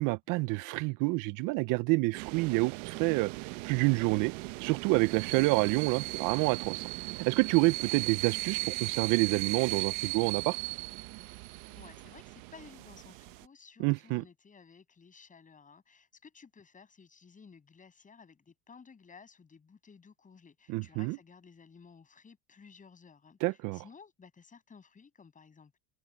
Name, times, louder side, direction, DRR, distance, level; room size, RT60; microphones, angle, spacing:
voice 1, 0.0-3.3 3.6-4.3 4.6-6.9 7.2-10.6 13.8-14.2 20.7-21.2 23.4-23.8, right 25 dB, 55° right, 0.5 m, -28 dB
sound 1, 2.1-13.5, right 24 dB, 85° right, 1.0 m, -37 dB
voice 2, 11.7-25.8, left 5 dB, 20° left, 7.2 m, -55 dB
cardioid pair, 145°, 38 cm